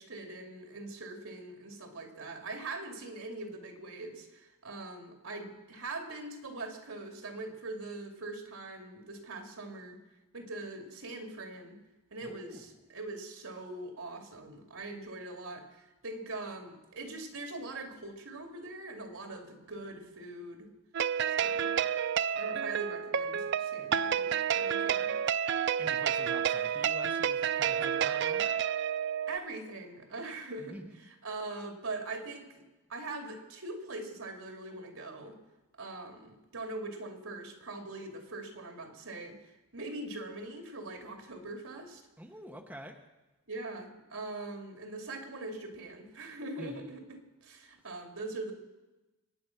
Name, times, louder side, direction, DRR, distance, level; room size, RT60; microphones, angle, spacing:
voice 1, 0.0-10.0 10.3-11.8 12.1-20.7 21.3-21.7 22.3-25.2 29.3-30.8 31.2-32.6 32.9-35.4 35.8-42.0 43.5-48.5, right 2 dB, 75° right, 4 dB, 2.6 m, -42 dB
voice 2, 12.2-12.7 25.5-28.5 30.6-31.0 42.2-43.0 46.6-46.9, right 1 dB, 5° right, 2 dB, 1.1 m, -47 dB
sound 1, 20.9-29.4, right 8 dB, 55° right, 0.4 m, -30 dB
24.0 x 9.6 x 6.0 m, 1.1 s
head